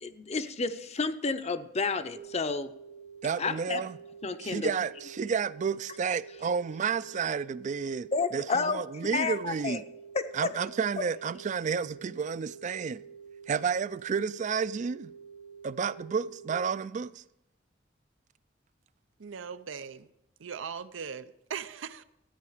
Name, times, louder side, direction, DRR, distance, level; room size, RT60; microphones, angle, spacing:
voice 1, 0.0-2.7 3.4-3.8 4.2-4.7 8.1-8.8 9.1-9.8 10.1-10.6, left 4 dB, 35° left, 0.6 m, -31 dB
sound 1, 2.1-16.5, right 6 dB, 65° right, 1.2 m, -49 dB
voice 2, 3.2-4.0 4.4-9.8 10.3-13.0 13.5-15.1 15.6-17.2, right 6 dB, 40° right, 0.3 m, -31 dB
voice 3, 19.2-20.1 20.4-22.0, right 6 dB, 90° right, 0.6 m, -39 dB
14.0 x 9.3 x 4.9 m
head